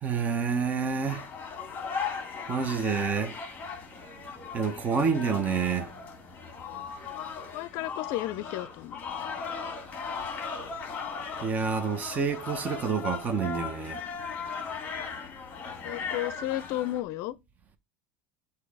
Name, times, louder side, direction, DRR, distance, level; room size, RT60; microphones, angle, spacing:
voice 1, 0.0-1.3 2.5-3.4 4.5-5.9 11.4-14.0, right 5 dB, 25° right, 0.8 m, -28 dB
sound 1, 1.1-17.0, left 5 dB, 20° left, 1.7 m, -38 dB
voice 2, 7.5-9.0 15.8-17.4, left 15 dB, 55° left, 0.5 m, -33 dB
8.3 x 2.8 x 4.7 m
supercardioid pair, 145°, 7 cm